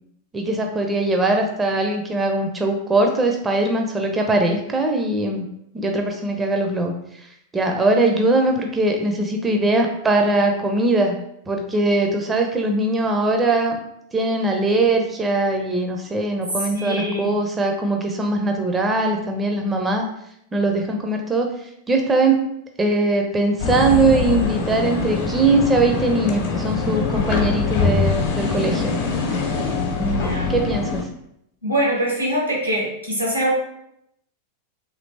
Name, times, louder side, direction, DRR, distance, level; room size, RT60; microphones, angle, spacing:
voice 1, 0.3-5.5 5.7-6.9 7.5-11.2 11.5-13.8 14.1-20.1 20.5-21.5 21.9-22.4 22.8-29.0 30.0-31.0, right 2 dB, 15° right, 3 dB, 0.4 m, -21 dB
voice 2, 16.7-17.3 30.2-30.5 31.6-33.5, right 1 dB, 90° right, -3 dB, 1.1 m, -23 dB
sound 1, 23.6-31.0, left 4 dB, 55° left, 0.7 m, -23 dB
3.1 x 2.9 x 2.7 m, 0.76 s
figure-of-eight pair, 90°, 0 cm